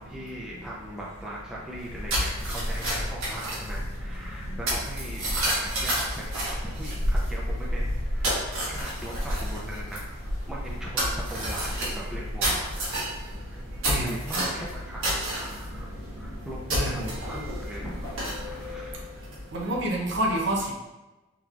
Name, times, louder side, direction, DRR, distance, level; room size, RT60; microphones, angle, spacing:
voice 1, 0.0-10.2 10.5-13.0 13.3-15.0 15.3-18.1 18.3-19.0, right 1 dB, 5° right, -5 dB, 0.4 m, -40 dB
sound 1, 1.7-19.7, equal, 75° right, 1.2 m, -30 dB
voice 2, 13.8-14.2 16.7-17.1 19.5-20.7, right 1 dB, 55° right, -1 dB, 0.6 m, -28 dB
3.7 x 2.9 x 2.3 m, 1.1 s
head